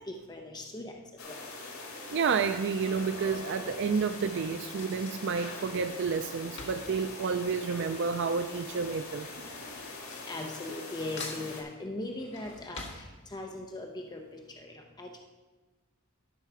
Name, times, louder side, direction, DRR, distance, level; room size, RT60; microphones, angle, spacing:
voice 1, 0.1-1.0 1.3-1.4 10.3-15.2, left 2 dB, 20° left, 2 dB, 0.7 m, -39 dB
sound 1, 1.2-11.6, left 3 dB, 90° left, 2.1 m, -43 dB
Drawer open or close / Cutlery silverware, 1.2-1.6 2.4-8.3 8.5-10.9 11.2-13.7 14.1-14.2 14.4-14.5, left 3 dB, 65° left, 1.7 m, -48 dB
voice 2, 2.1-9.5, right 5 dB, 60° right, 9 dB, 0.4 m, -30 dB
12.0 x 5.6 x 5.0 m, 1.3 s
head